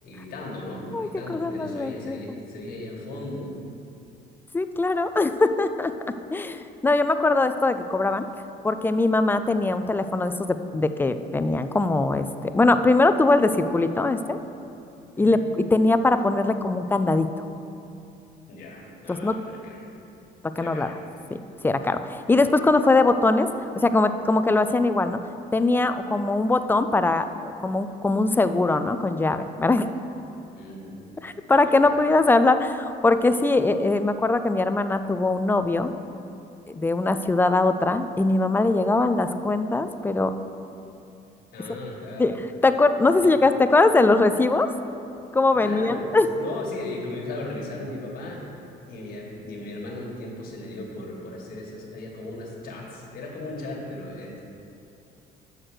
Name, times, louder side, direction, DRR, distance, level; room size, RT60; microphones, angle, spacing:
voice 1, 0.0-3.5 15.2-15.4 18.5-19.9 20.5-21.0 30.5-31.0 31.5-32.0 41.5-42.3 43.2-43.3 44.3-44.4 45.6-48.4 48.8-54.4, left 2 dB, 55° left, -2 dB, 1.6 m, -37 dB
voice 2, 0.9-2.2 4.5-5.9 6.3-8.3 8.6-14.4 15.2-17.3 19.1-19.4 20.6-20.9 21.6-23.5 23.8-25.2 25.5-29.9 31.2-35.9 36.7-40.3 42.2-42.4 42.6-44.7 45.3-46.3, left 2 dB, 10° left, 10 dB, 0.3 m, -21 dB
6.4 x 5.9 x 6.4 m, 2.7 s
cardioid pair, 110°, 17 cm